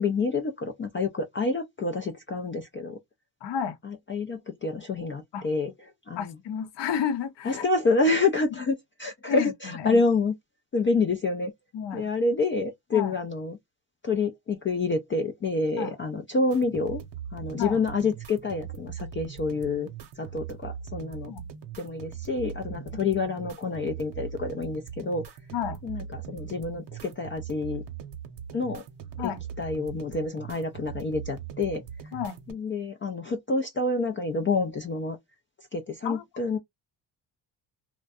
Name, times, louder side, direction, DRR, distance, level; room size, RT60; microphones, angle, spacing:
voice 1, 0.0-3.0 3.8-5.7 6.1-6.3 7.5-10.3 10.7-11.5 11.9-13.6 14.0-17.0 17.3-19.9 20.2-21.3 21.8-25.2 25.8-27.8 28.5-28.8 29.2-29.3 29.6-31.8 32.5-35.2 35.7-36.6, left 3 dB, 30° left, 0.3 m, -28 dB
voice 2, 3.4-3.8 5.3-5.5 6.2-7.7 9.3-10.0 11.7-12.1 12.9-13.1 15.8-15.9 17.6-17.8 21.3-21.5 22.9-23.1 25.5-25.8 29.2-29.4 32.1-32.4 36.0-36.2, left 8 dB, 60° left, 0.7 m, -31 dB
sound 1, 16.5-32.5, right 8 dB, 60° right, 0.8 m, -40 dB
2.5 x 2.1 x 2.3 m
cardioid pair, 80°, 49 cm